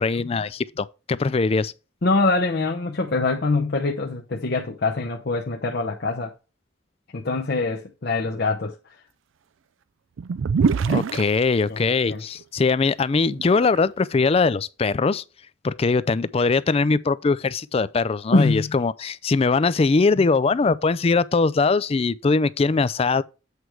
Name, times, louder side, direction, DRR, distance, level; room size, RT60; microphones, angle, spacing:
voice 1, 0.0-1.7 10.8-15.2 15.6-23.2, left 4 dB, 30° left, 0.4 m, -21 dB
voice 2, 2.0-6.3 7.1-8.8 11.7-12.2 18.3-18.7 20.2-20.3, left 3 dB, 55° left, 0.7 m, -24 dB
sound 1, 10.2-11.2 12.4-12.5 13.2-13.8, right 5 dB, 75° right, 0.4 m, -23 dB
8.3 x 4.7 x 4.5 m
head